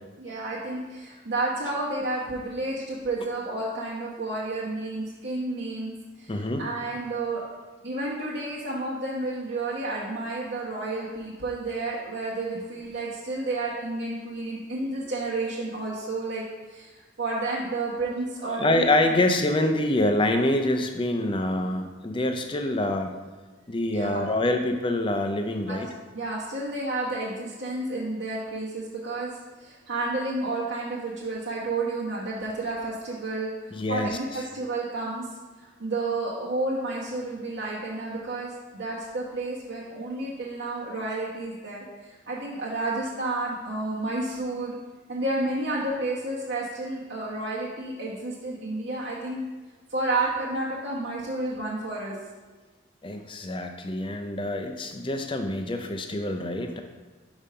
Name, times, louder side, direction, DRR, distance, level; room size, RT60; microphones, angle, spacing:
voice 1, 0.2-7.4 7.8-19.2 23.9-24.3 25.7-25.8 26.1-35.2 35.6-44.8 45.1-49.4 49.9-52.1, right 2 dB, 55° right, -6 dB, 1.0 m, -31 dB
voice 2, 6.3-6.6 18.4-23.1 23.7-25.9 33.7-34.4 53.0-56.8, left 1 dB, 25° left, 5 dB, 0.5 m, -26 dB
5.3 x 4.9 x 5.6 m, 1.3 s
head